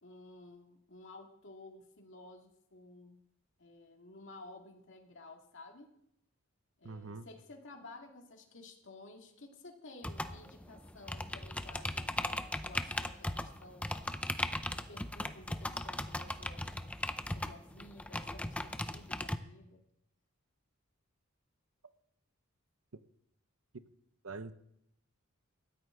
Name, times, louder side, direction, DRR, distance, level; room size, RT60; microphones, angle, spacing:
voice 1, 0.0-3.2 3.6-5.9 6.8-13.9 14.7-17.0 17.2-19.8, left 2 dB, 60° left, 2 dB, 2.2 m, -54 dB
voice 2, 6.8-7.3 24.2-24.6, right 3 dB, 75° right, 12 dB, 0.8 m, -44 dB
sound 1, 10.0-19.4, left 1 dB, 5° left, 0.6 m, -38 dB
19.0 x 13.5 x 3.9 m, 0.77 s
head